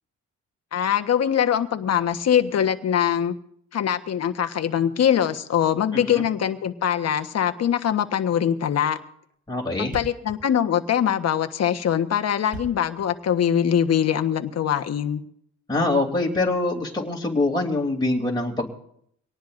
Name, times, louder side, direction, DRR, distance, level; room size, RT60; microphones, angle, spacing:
voice 1, 0.7-3.4 3.7-9.0 9.8-15.2, left 9 dB, 55° left, 7 dB, 1.3 m, -22 dB
Thump thud, 8.5-8.7 9.0-9.1 9.3-9.4 9.6-9.7 9.9-13.9, right 3 dB, 30° right, 5.9 m, -41 dB
voice 2, 9.5-9.9 15.7-18.7, left 2 dB, 15° left, -2 dB, 3.1 m, -24 dB
24.5 x 18.5 x 2.6 m, 0.67 s
cardioid pair, 90°, 30 cm